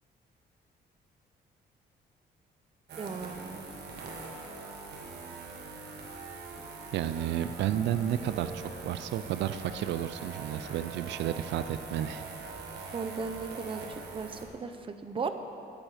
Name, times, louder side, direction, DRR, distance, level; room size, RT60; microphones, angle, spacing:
sound 1, 2.9-14.4, right 4 dB, 70° right, 1.6 m, -43 dB
voice 1, 3.0-3.7 12.9-13.8 14.1-15.3, right 5 dB, 30° right, 8 dB, 0.7 m, -36 dB
voice 2, 6.9-12.2, right 11 dB, 90° right, 12 dB, 0.4 m, -32 dB
13.5 x 8.8 x 5.0 m, 2.6 s
cardioid pair, 135°, 18 cm